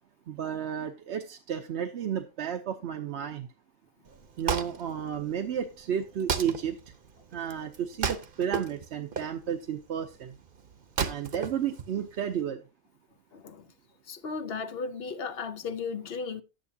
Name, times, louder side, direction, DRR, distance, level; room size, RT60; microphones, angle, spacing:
voice 1, 0.3-3.5 4.4-6.8 7.3-10.3 11.0-12.6, right 8 dB, 75° right, 1.0 m, -32 dB
Wood, 4.1-12.4, right 6 dB, 55° right, 1.0 m, -35 dB
voice 2, 13.3-13.7 14.0-16.4, left 5 dB, 60° left, 1.0 m, -35 dB
11.5 x 9.1 x 2.7 m
omnidirectional pair, 1.2 m